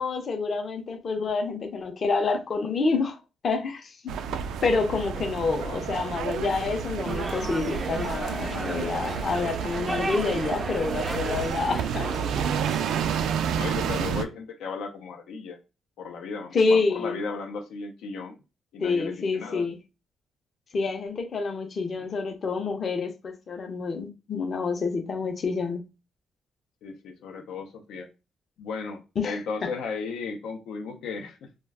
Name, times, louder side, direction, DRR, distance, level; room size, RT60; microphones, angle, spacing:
voice 1, 0.0-3.2 3.4-4.1 4.6-12.1 16.5-17.2 18.8-19.8 20.7-25.8 29.2-29.4, left 4 dB, 40° left, 0.6 m, -27 dB
sound 1, 4.1-14.2, right 7 dB, 90° right, 0.3 m, -30 dB
sound 2, 7.1-13.4, right 1 dB, 10° right, 0.3 m, -36 dB
voice 2, 13.5-15.6 16.0-18.4 18.7-19.7 22.0-22.1 26.8-28.1 28.6-31.5, left 4 dB, 85° left, 0.5 m, -35 dB
2.3 x 2.1 x 3.4 m
cardioid pair, 160°, 0 cm